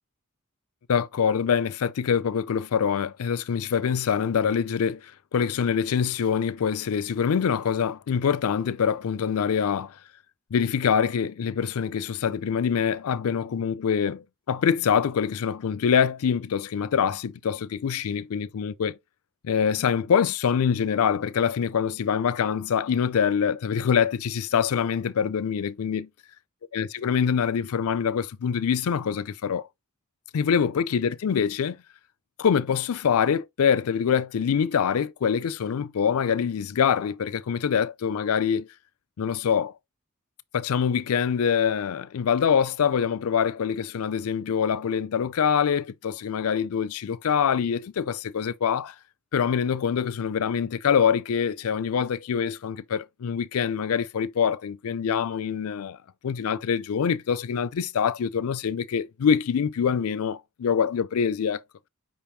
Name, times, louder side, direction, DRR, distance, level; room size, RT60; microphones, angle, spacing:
voice 1, 0.9-9.9 10.5-19.0 19.4-26.1 26.7-29.7 30.3-31.8 32.4-38.7 39.2-39.7 40.5-48.9 49.3-56.0 56.2-61.6, left 7 dB, 70° left, 0.4 m, -25 dB
5.3 x 3.5 x 2.7 m
head